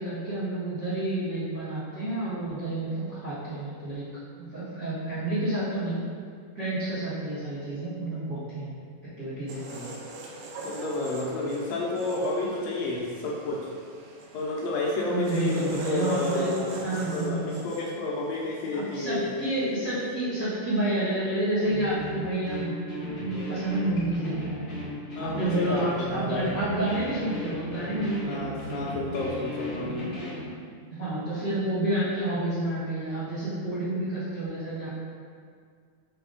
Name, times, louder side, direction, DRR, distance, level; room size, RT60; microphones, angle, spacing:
voice 1, 0.0-4.1 4.4-6.0 6.5-8.7 9.0-9.9 15.1-17.7 18.7-24.6 25.2-28.4 30.9-35.0, right 1 dB, 45° right, -12 dB, 1.1 m, -29 dB
sound 1, 9.5-19.5 19.8-20.1, right 2 dB, 85° right, 1.7 m, -43 dB
voice 2, 10.6-13.7 14.3-19.3 25.1-26.5 28.2-30.1, left 2 dB, 90° left, -4 dB, 1.5 m, -30 dB
sound 2, 21.6-30.5, equal, 50° left, 0.9 m, -36 dB
5.7 x 3.4 x 5.3 m, 2.1 s
omnidirectional pair, 4.2 m